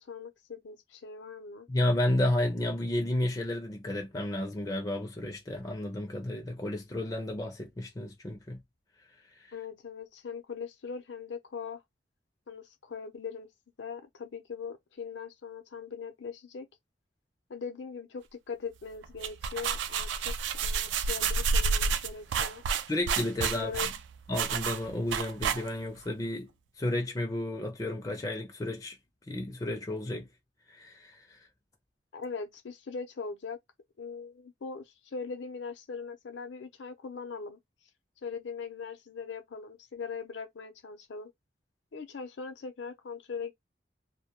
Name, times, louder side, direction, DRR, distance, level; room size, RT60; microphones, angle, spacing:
voice 1, 0.0-1.7 9.5-11.8 12.5-13.5 13.8-16.7 17.5-22.6 23.5-23.9 32.1-33.6 34.0-37.6 38.2-41.3 41.9-43.5, left 5 dB, 80° left, 0.5 m, -40 dB
voice 2, 1.7-8.6 9.4-9.5 22.9-23.9 24.3-29.0 29.3-30.3 30.7-31.4, left 1 dB, 20° left, 0.4 m, -32 dB
sound 1, 19.0-26.0, right 5 dB, 80° right, 0.3 m, -30 dB
2.1 x 2.1 x 2.8 m
head